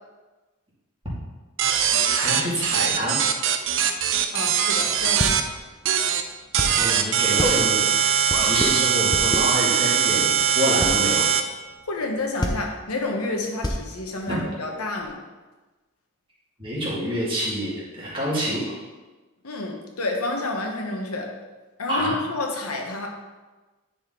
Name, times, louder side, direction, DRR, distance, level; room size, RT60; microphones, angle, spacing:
sound 1, 1.6-5.4 5.8-6.2 6.5-11.4, right 8 dB, 60° right, 0.5 m, -21 dB
voice 1, 2.1-3.2 6.7-7.8 8.4-11.3 14.3-14.4 16.6-18.8 21.9-22.1, equal, 25° right, -7 dB, 2.2 m, -27 dB
voice 2, 4.3-5.4 11.9-15.2 19.4-21.3 21.8-23.1, left 2 dB, 85° left, 1 dB, 1.1 m, -29 dB
sound 2, 4.7-15.1, left 1 dB, 20° left, 0.7 m, -29 dB
9.9 x 4.2 x 3.7 m, 1.2 s
head